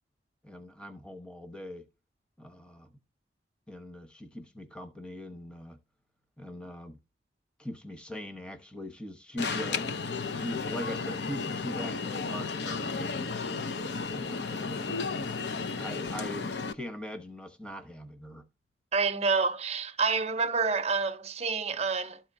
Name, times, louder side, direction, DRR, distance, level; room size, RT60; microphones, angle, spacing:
voice 1, 0.4-1.9 2.4-2.9 3.7-5.8 6.4-7.0 7.6-9.9 10.3-13.6 14.2-15.2 15.8-18.5, left 1 dB, 5° left, 0.9 m, -41 dB
Alarm, 9.4-16.7, left 4 dB, 75° left, 0.7 m, -33 dB
voice 2, 18.9-22.2, right 4 dB, 35° right, 0.6 m, -28 dB
12.5 x 4.3 x 2.6 m
head